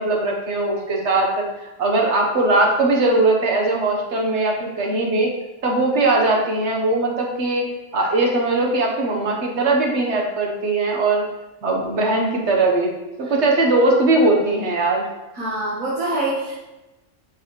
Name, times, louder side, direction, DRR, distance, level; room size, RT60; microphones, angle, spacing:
voice 1, 0.0-5.3 5.6-7.6 7.9-11.2 11.6-12.9 13.2-15.1, right 2 dB, 60° right, 0 dB, 1.5 m, -20 dB
voice 2, 15.3-16.6, right 2 dB, 90° right, -8 dB, 1.9 m, -25 dB
8.3 x 4.7 x 3.2 m, 1.0 s
omnidirectional pair, 1.4 m